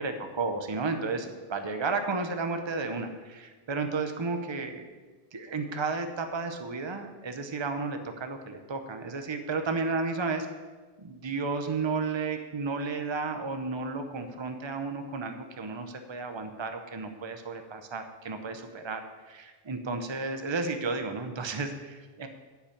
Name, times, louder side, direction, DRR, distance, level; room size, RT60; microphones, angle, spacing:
voice 1, 0.0-4.8 5.3-10.5 11.0-22.3, right 4 dB, 30° right, 7 dB, 0.8 m, -33 dB
10.5 x 5.8 x 8.6 m, 1.3 s
omnidirectional pair, 1.1 m